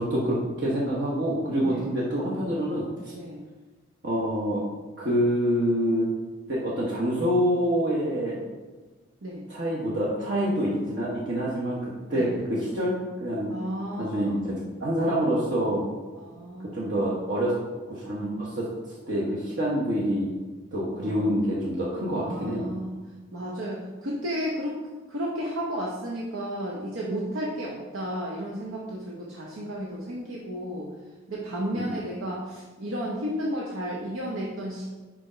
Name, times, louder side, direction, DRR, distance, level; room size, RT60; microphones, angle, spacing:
voice 1, 0.0-3.1 4.0-4.6 5.0-6.1 6.5-8.4 9.5-13.5 14.0-15.9 16.7-17.5 17.9-18.7 19.1-20.3 20.7-22.7 31.8-31.9, equal, 55° right, -6 dB, 1.0 m, -26 dB
voice 2, 13.5-14.4 16.2-16.7 21.0-21.4 22.2-22.9 23.3-24.8 25.1-30.9 31.3-34.8, equal, 75° right, -3 dB, 0.8 m, -33 dB
5.0 x 4.4 x 5.0 m, 1.3 s
head